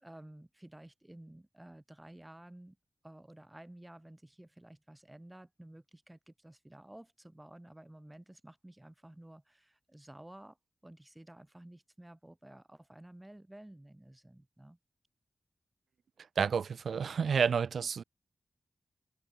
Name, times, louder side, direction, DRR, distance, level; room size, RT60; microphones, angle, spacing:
voice 1, 0.0-2.8 3.0-10.6 10.8-14.8, right 1 dB, 15° right, 6.5 m, -53 dB
voice 2, 16.4-18.0, right 6 dB, 85° right, 0.6 m, -30 dB
cardioid pair, 70°, 0 cm